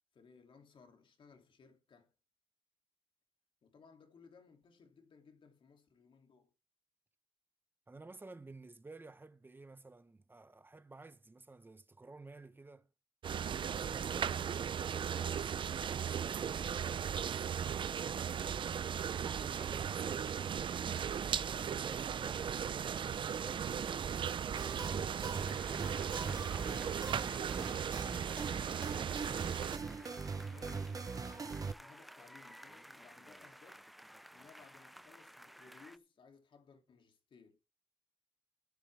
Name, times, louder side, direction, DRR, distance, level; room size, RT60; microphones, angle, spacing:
voice 1, 0.1-2.1 3.6-6.5 26.0-27.9 29.4-33.9 34.3-37.6, left 5 dB, 65° left, 3.0 m, -61 dB
voice 2, 7.9-12.9 13.7-17.9 19.1-20.4 21.3-24.6 28.3-28.8, right 3 dB, 20° right, 1.3 m, -54 dB
sound 1, 13.2-29.8, right 8 dB, 65° right, 0.6 m, -37 dB
sound 2, 24.6-31.7, right 5 dB, 40° right, 0.9 m, -41 dB
sound 3, 25.4-36.0, equal, ahead, 0.6 m, -55 dB
14.5 x 9.1 x 3.5 m
cardioid pair, 90°, 9 cm